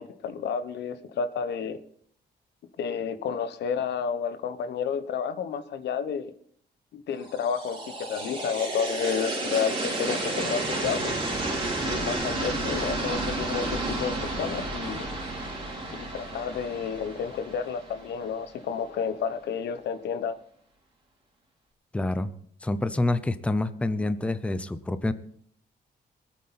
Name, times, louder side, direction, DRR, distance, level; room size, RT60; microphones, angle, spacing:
voice 1, 0.0-1.8 2.8-6.3 6.9-9.7 10.0-11.2 11.8-15.1 15.9-20.4, left 7 dB, 80° left, 11 dB, 1.1 m, -31 dB
sound 1, 7.3-18.3, right 2 dB, 30° right, 3.5 m, -31 dB
voice 2, 21.9-22.3 22.6-25.1, left 2 dB, 5° left, 11 dB, 0.6 m, -27 dB
23.0 x 8.5 x 4.2 m, 0.64 s
wide cardioid pair, 175°, 17 cm